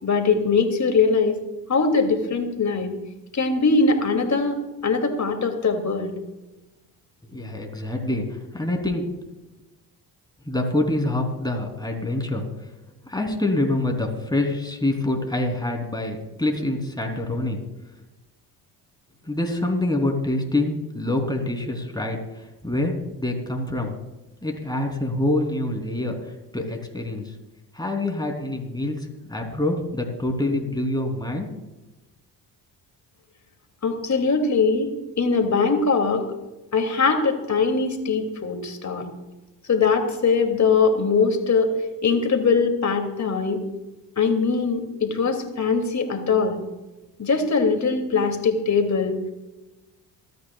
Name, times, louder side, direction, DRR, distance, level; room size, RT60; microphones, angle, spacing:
voice 1, 0.0-1.3 1.7-2.9 3.3-6.1 33.8-34.9 35.2-36.3 36.7-39.1 39.7-41.7 42.0-43.6 44.2-46.6 47.2-49.2, left 4 dB, 35° left, 4 dB, 2.7 m, -21 dB
voice 2, 7.2-9.1 10.4-12.4 13.1-17.6 19.2-23.9 24.4-27.3 27.7-31.5, left 1 dB, 10° left, 2 dB, 3.3 m, -26 dB
27.5 x 9.5 x 2.4 m, 1.1 s
hypercardioid pair, 50°, 48 cm